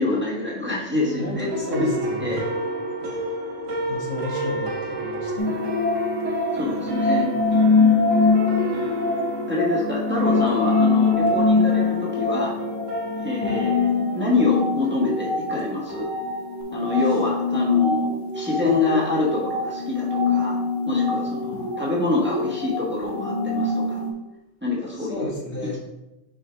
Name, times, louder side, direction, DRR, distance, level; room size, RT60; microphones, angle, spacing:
voice 1, 0.0-1.5 1.8-1.9 2.2-2.4 6.5-7.3 9.5-12.5 13.2-13.9 14.1-16.1 16.7-20.6 20.8-24.0 24.6-25.3 25.6-25.8, left 3 dB, 10° right, -5 dB, 1.4 m, -26 dB
sound 1, 1.0-16.6, right 2 dB, 80° right, 1.3 m, -31 dB
voice 2, 1.2-2.4 3.9-5.5 18.6-19.2 25.0-25.8, left 1 dB, 60° left, -3 dB, 1.5 m, -31 dB
sound 2, 5.4-24.1, left 4 dB, 30° left, 1.0 m, -23 dB
6.5 x 4.6 x 3.4 m, 0.98 s
omnidirectional pair, 1.3 m